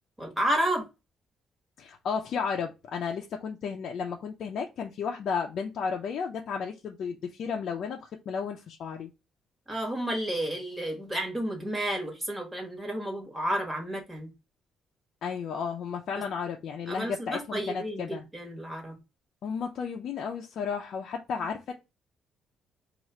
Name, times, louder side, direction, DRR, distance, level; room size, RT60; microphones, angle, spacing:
voice 1, 0.2-0.9 9.7-14.3 16.9-19.0, right 1 dB, 10° right, 1.3 m, -31 dB
voice 2, 1.8-9.1 15.2-18.2 19.4-21.7, left 6 dB, 55° left, 0.4 m, -33 dB
2.9 x 2.4 x 4.3 m
cardioid pair, 145°, 0 cm